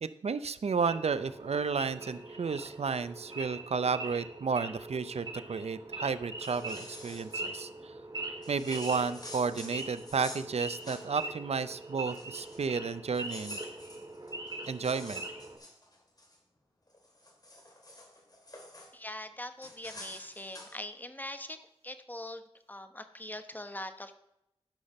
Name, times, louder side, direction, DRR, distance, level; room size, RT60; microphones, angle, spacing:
voice 1, 0.0-7.9 8.5-13.6 14.7-15.2, right 5 dB, 85° right, 13 dB, 0.6 m, -32 dB
Wild animals / Idling, 0.8-15.6, right 2 dB, 40° right, 2.0 m, -42 dB
sound 1, 6.3-7.4 8.4-11.3 11.6-11.7 12.1-12.7 13.1-16.4 16.9-18.9 19.6-20.7, left 1 dB, 40° left, 2.6 m, -48 dB
voice 2, 18.9-24.2, left 1 dB, 15° left, 9 dB, 1.0 m, -42 dB
12.0 x 5.8 x 5.4 m, 0.85 s
wide cardioid pair, 65°, 11 cm